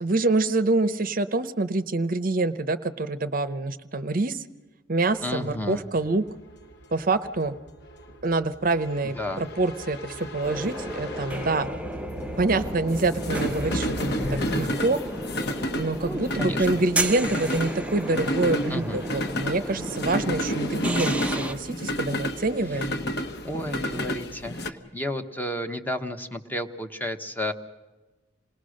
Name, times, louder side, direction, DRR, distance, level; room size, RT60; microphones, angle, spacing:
voice 1, 0.0-4.4 4.9-6.2 6.9-7.5 8.2-11.7 12.4-15.0 15.8-22.9, right 2 dB, 45° right, 12 dB, 0.7 m, -26 dB
sound 1, 5.2-24.7, equal, 55° left, 1.3 m, -31 dB
voice 2, 5.2-5.8 9.0-9.5 16.0-16.6 18.7-19.0 23.4-27.5, left 1 dB, 10° left, 7 dB, 1.0 m, -32 dB
sound 2, 10.4-21.5, right 1 dB, 5° right, 0.7 m, -34 dB
27.0 x 19.5 x 6.4 m, 1.2 s
head